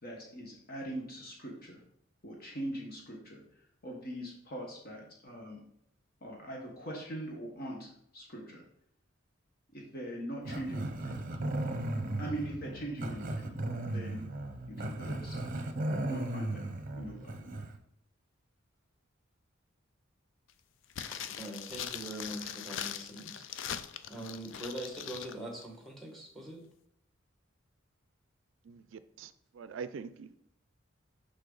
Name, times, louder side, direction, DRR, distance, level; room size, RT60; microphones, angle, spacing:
voice 1, 0.0-1.8 2.2-3.4 3.8-5.6 6.2-8.6 9.7-11.2 12.2-13.6 13.9-14.2 14.7-15.5 15.9-17.5, right 1 dB, 50° left, 0 dB, 1.3 m, -42 dB
Growling, 10.4-17.8, right 1 dB, 45° right, 0.8 m, -36 dB
sound 1, 20.9-25.3 25.6-25.7, left 9 dB, 65° left, 0.4 m, -41 dB
voice 2, 21.4-23.8 24.1-26.6, right 1 dB, ahead, 1 dB, 1.5 m, -43 dB
voice 3, 29.6-30.3, right 5 dB, 70° right, 13 dB, 0.4 m, -42 dB
6.5 x 5.6 x 3.9 m, 0.71 s
head